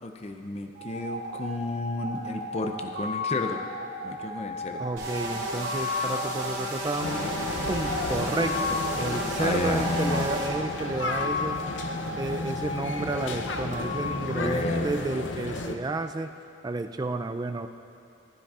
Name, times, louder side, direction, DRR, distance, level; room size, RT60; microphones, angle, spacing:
voice 1, 0.0-3.6 4.0-4.9 9.4-10.3 14.3-15.0, left 2 dB, 35° left, 5 dB, 0.5 m, -31 dB
sound 1, 0.7-15.2, left 3 dB, 55° right, 1.9 m, -35 dB
voice 2, 4.8-7.3 7.7-11.6 12.1-16.3 16.6-17.7, right 2 dB, 20° right, 7 dB, 0.3 m, -31 dB
sound 2, 5.0-10.5, right 1 dB, 85° right, 2.5 m, -33 dB
sound 3, 7.0-15.8, left 2 dB, 75° left, 0.6 m, -33 dB
15.5 x 11.5 x 2.4 m, 2.8 s
head